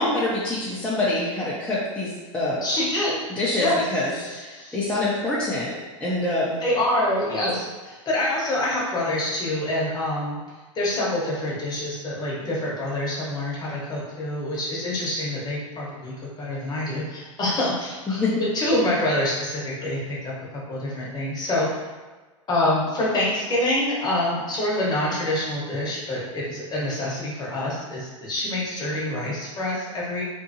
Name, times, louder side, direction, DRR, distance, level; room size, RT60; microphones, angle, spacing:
voice 1, 0.0-2.6 3.3-5.7 6.0-6.6 18.1-18.3, left 2 dB, 5° left, -10 dB, 0.6 m, -25 dB
voice 2, 2.6-3.2 3.6-3.8 4.1-4.8 6.6-10.4 10.7-18.2 18.5-21.7 22.5-30.2, left 1 dB, 25° left, -5 dB, 0.9 m, -26 dB
2.6 x 2.6 x 2.6 m, 1.3 s
hypercardioid pair, 110°, 17 cm